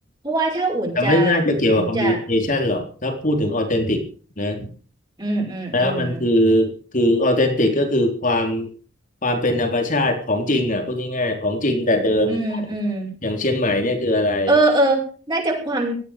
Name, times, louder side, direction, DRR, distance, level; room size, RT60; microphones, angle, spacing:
voice 1, 0.2-1.4 1.7-2.2 5.2-6.2 12.3-13.1 14.5-16.0, right 2 dB, 25° right, -1 dB, 6.1 m, -22 dB
voice 2, 1.0-4.0 4.4-4.7 5.7-8.7 9.2-12.4 13.2-14.5, left 1 dB, 40° left, 5 dB, 3.7 m, -20 dB
18.0 x 14.0 x 5.1 m, 0.42 s
head